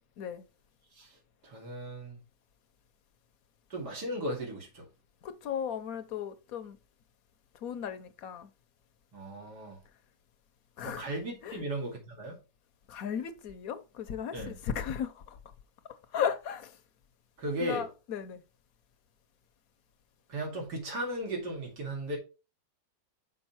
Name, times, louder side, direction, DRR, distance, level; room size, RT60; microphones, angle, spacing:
voice 1, 1.4-2.2 3.7-4.9 9.1-9.8 10.8-12.4 14.3-14.5 17.4-17.8 20.3-22.2, right 1 dB, 75° right, 2.8 m, -36 dB
voice 2, 5.2-6.8 7.5-8.5 10.8-11.1 11.4-11.6 12.9-15.5 15.8-16.8 17.6-18.4, left 8 dB, 65° left, 1.1 m, -36 dB
6.2 x 5.1 x 4.4 m
omnidirectional pair, 1.8 m